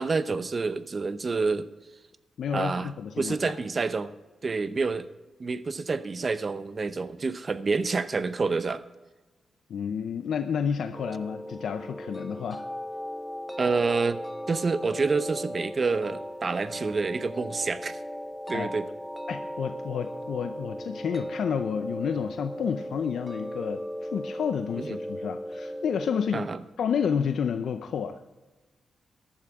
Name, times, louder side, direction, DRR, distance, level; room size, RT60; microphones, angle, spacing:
voice 1, 0.0-1.7 2.5-2.9 3.2-4.1 4.4-5.1 5.4-8.8 13.6-14.2 14.5-18.0 18.5-18.9 24.8-25.0 26.3-26.6, right 4 dB, 40° right, 13 dB, 0.7 m, -28 dB
voice 2, 2.4-3.5 9.7-12.6 18.5-18.7 19.3-23.8 24.1-26.5 26.8-28.2, left 7 dB, 75° left, 8 dB, 0.6 m, -30 dB
sound 1, 10.9-26.3, equal, 5° left, 0.5 m, -37 dB
15.0 x 12.0 x 3.6 m, 1.2 s
cardioid pair, 75°, 0 cm